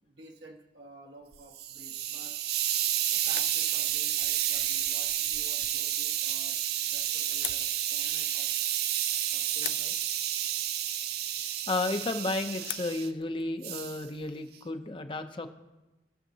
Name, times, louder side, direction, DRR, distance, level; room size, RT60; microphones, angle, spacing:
voice 1, 0.0-2.5 3.1-8.6 9.3-10.0, right 2 dB, 80° right, -1 dB, 1.3 m, -52 dB
sound 1, 1.3-14.2, left 14 dB, 80° left, 0.4 m, -48 dB
Hiss, 1.3-13.1 13.6-14.0, right 11 dB, 60° right, 0.4 m, -30 dB
voice 2, 11.7-15.5, left 2 dB, 30° left, 8 dB, 0.5 m, -32 dB
18.5 x 6.4 x 2.7 m, 1.0 s
head